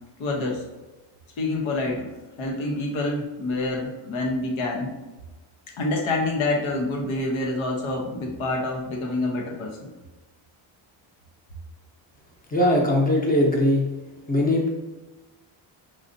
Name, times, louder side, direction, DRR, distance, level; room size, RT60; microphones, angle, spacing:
voice 1, 0.2-0.6 1.4-2.1 2.4-4.9 5.8-9.9, left 2 dB, 75° left, 0 dB, 1.1 m, -27 dB
voice 2, 12.5-13.8 14.3-14.7, left 1 dB, 20° left, -1 dB, 0.8 m, -20 dB
4.9 x 2.7 x 2.6 m, 1.2 s
cardioid pair, 150°, 49 cm